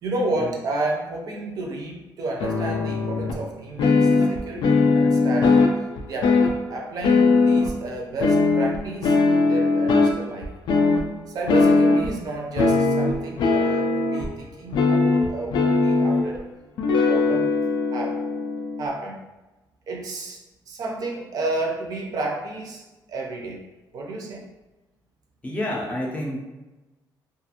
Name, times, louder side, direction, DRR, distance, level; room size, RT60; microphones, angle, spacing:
voice 1, 0.0-5.6 6.1-10.5 11.3-16.4 16.9-17.5 17.9-18.2 18.8-19.2 19.9-22.8 23.1-23.6 23.9-24.4, right 2 dB, 55° right, 0 dB, 0.5 m, -31 dB
sound 1, 2.4-3.3 3.8-6.6 7.0-7.7 8.2-10.2 10.4-11.0 11.5-12.2 12.6-14.3 14.7-16.4 16.8-18.9, left 3 dB, 75° left, 0.4 m, -20 dB
voice 2, 25.4-26.5, left 1 dB, 15° left, -2 dB, 0.5 m, -28 dB
2.4 x 2.4 x 2.8 m, 1.1 s
cardioid pair, 140°, 8 cm